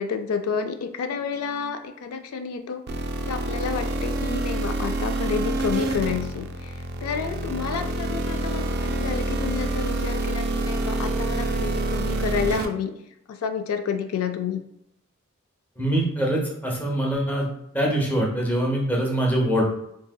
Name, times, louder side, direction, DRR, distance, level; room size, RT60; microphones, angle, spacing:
voice 1, 0.0-2.8 3.3-6.7 7.0-12.9 13.3-14.6, left 6 dB, 90° left, 8 dB, 0.3 m, -30 dB
sound 1, 2.9-12.7, right 2 dB, 50° right, 0.3 m, -27 dB
voice 2, 15.8-17.5 17.7-19.7, right 1 dB, 10° left, -2 dB, 0.6 m, -23 dB
3.8 x 2.7 x 2.2 m, 0.80 s
head